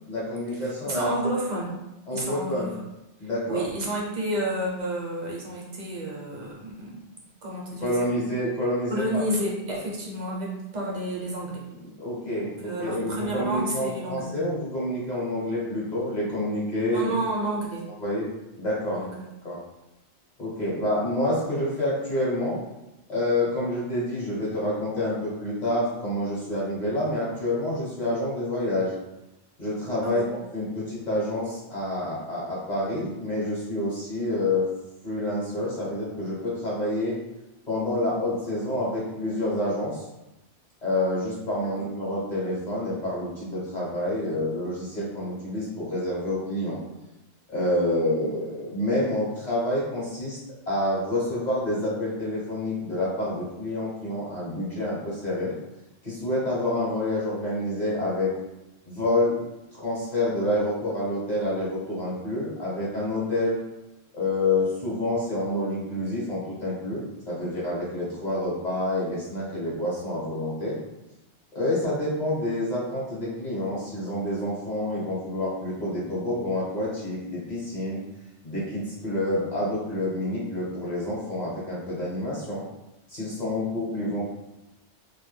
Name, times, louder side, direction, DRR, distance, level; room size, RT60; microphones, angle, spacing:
voice 1, 0.0-1.1 2.1-2.7 3.2-3.7 7.8-9.2 12.0-17.1 18.0-18.3 18.6-19.0 19.4-19.6 20.4-22.6 23.1-28.9 29.6-34.7 35.0-37.2 37.7-40.1 40.8-46.8 47.5-50.4 50.7-55.5 56.0-58.3 58.9-59.4 59.7-63.6 64.1-70.8 71.5-78.0 78.4-82.6 83.1-84.2, left 1 dB, 45° left, -7 dB, 0.8 m, -28 dB
voice 2, 0.8-1.7 2.1-2.7 3.2-7.0 7.4-8.1 8.9-11.6 12.4-14.3 16.9-17.9 18.9-19.2 30.0-30.3 41.6-41.9, right 1 dB, 50° right, -3 dB, 0.6 m, -30 dB
2.2 x 2.1 x 3.1 m, 0.95 s
omnidirectional pair, 1.1 m